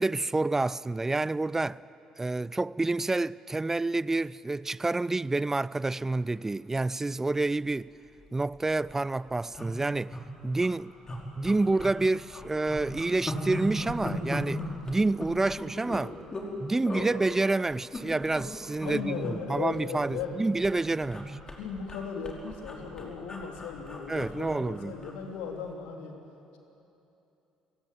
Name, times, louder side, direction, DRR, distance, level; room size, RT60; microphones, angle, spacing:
voice 1, 0.0-1.8 2.2-7.9 8.3-10.2 10.4-10.9 11.4-16.2 16.6-21.4 24.1-24.9, right 2 dB, 15° right, 0.5 m, -28 dB
sound 1, 8.1-8.2 8.5-8.6 8.8-9.1 9.5-10.2 10.6-10.7 11.1-12.0 12.3-16.5 16.8-17.1 17.7-18.5 18.8-18.9 19.2-20.4 20.6-25.2 25.5-25.7, left 1 dB, 30° left, 4.8 m, -38 dB
voice 2, 18.8-20.4 21.0-21.1 21.6-26.1, left 6 dB, 75° left, 3.3 m, -37 dB
29.5 x 17.5 x 9.2 m
hypercardioid pair, 55°, 2 cm